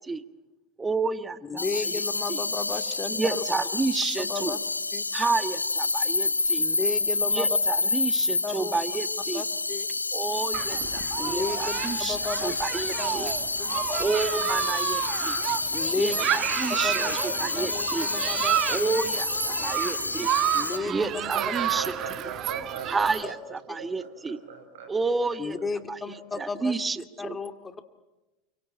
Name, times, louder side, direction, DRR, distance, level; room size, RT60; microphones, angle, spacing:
voice 1, 0.8-2.0 2.3-2.4 3.1-4.6 5.1-6.6 7.3-9.4 10.1-12.2 12.4-13.3 14.0-15.4 16.0-17.0 17.4-18.1 18.7-20.3 20.8-21.8 22.9-24.4 24.9-25.6 25.9-26.0 26.4-27.4, right 4 dB, 15° right, 12 dB, 1.6 m, -30 dB
voice 2, 1.5-3.4 4.2-4.6 4.9-5.0 6.6-7.5 8.4-8.8 9.3-9.9 11.2-12.6 13.0-14.0 15.7-16.3 16.8-19.0 20.5-21.6 25.4-26.9 27.2-27.9, left 4 dB, 20° left, 8 dB, 2.3 m, -34 dB
sound 1, 1.6-20.8, left 3 dB, 85° left, 0.9 m, -29 dB
Human group actions, 10.5-23.2, right 12 dB, 40° right, 1.4 m, -30 dB
voice 3, 21.3-25.7, right 5 dB, 65° right, 6 dB, 5.0 m, -40 dB
29.0 x 24.0 x 8.5 m, 1.0 s
figure-of-eight pair, 80°, 0 cm